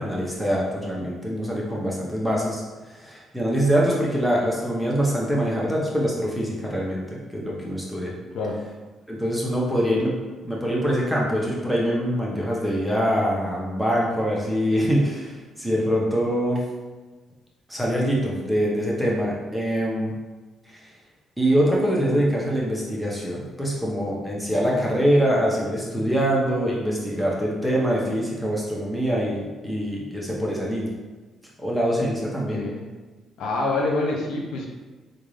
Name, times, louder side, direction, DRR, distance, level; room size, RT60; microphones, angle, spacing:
voice 1, 0.0-2.6 2.9-8.1 9.1-10.1 10.4-16.6 17.7-20.1 20.7-20.8 21.4-30.9 31.6-32.6, equal, ahead, -4 dB, 0.9 m, -24 dB
voice 2, 32.5-32.9 33.4-34.7, left 2 dB, 80° left, -1 dB, 0.6 m, -26 dB
3.6 x 2.5 x 3.2 m, 1.3 s
cardioid pair, 90°, 0 cm